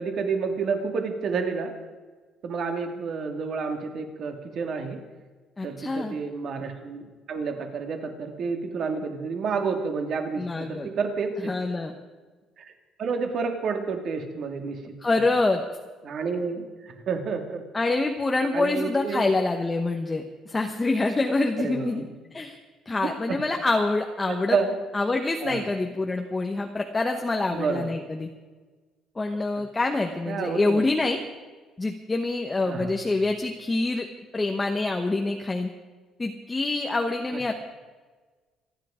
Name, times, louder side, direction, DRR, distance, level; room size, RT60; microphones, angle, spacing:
voice 1, 0.0-1.7 2.4-5.0 5.6-11.5 12.6-12.7 13.0-14.8 16.0-17.6 18.5-19.3 21.6-22.1 23.0-23.1 24.3-24.7 25.4-25.6 27.5-27.9 30.3-30.8 32.6-32.9, right 5 dB, 45° right, 5 dB, 2.4 m, -29 dB
voice 2, 5.6-6.2 10.4-10.9 11.4-11.9 15.0-15.6 17.7-22.0 22.3-22.6 22.9-24.6 24.9-28.3 29.2-31.2 31.8-34.1 34.3-35.7 36.2-37.5, left 2 dB, 15° left, 3 dB, 1.1 m, -26 dB
27.5 x 10.5 x 5.0 m, 1.4 s
cardioid pair, 155°, 0 cm